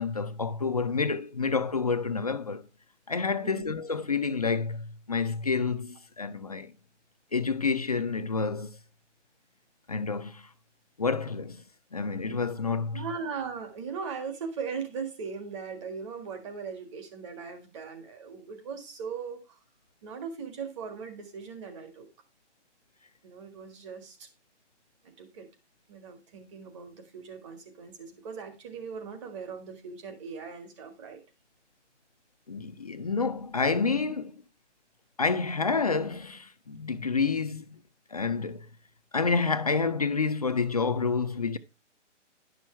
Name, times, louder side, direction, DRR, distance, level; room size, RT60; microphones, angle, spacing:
voice 1, 0.0-2.6 3.1-6.7 7.3-8.7 9.9-10.5 11.0-11.6 11.9-13.0 32.5-34.3 35.2-37.8 38.1-38.7 39.1-41.6, left 4 dB, 35° left, 0.4 m, -29 dB
voice 2, 12.9-19.6 20.0-22.1 23.2-24.3 25.0-25.5 25.9-31.2, right 5 dB, 25° right, 1.6 m, -39 dB
11.0 x 6.2 x 4.4 m
hypercardioid pair, 160°, 36 cm